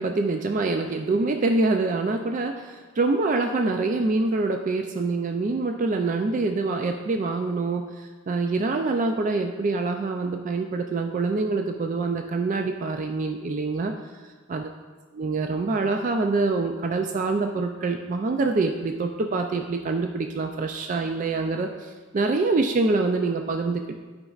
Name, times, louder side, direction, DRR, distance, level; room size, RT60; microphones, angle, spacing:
voice 1, 0.0-13.9 14.2-14.7 15.1-23.9, right 3 dB, 40° right, 4 dB, 0.3 m, -25 dB
12.0 x 5.2 x 2.4 m, 1.4 s
head